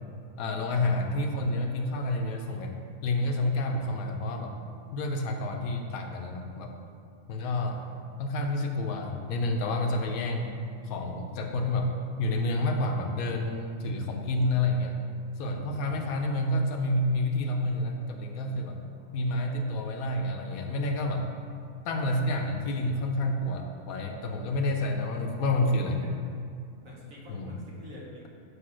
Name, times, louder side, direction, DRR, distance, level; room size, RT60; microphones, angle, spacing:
voice 1, 0.4-2.8 3.0-4.6 4.9-6.7 7.3-7.8 8.2-11.9 12.2-15.0 15.4-18.8 19.1-21.3 21.9-26.0 27.3-27.5, left 1 dB, 80° left, 4 dB, 1.1 m, -29 dB
voice 2, 7.4-7.9 15.9-16.1 19.0-19.2 24.4-24.8 25.8-26.2 26.8-28.3, equal, 70° right, -4 dB, 1.7 m, -50 dB
8.1 x 2.8 x 6.0 m, 2.3 s
omnidirectional pair, 1.5 m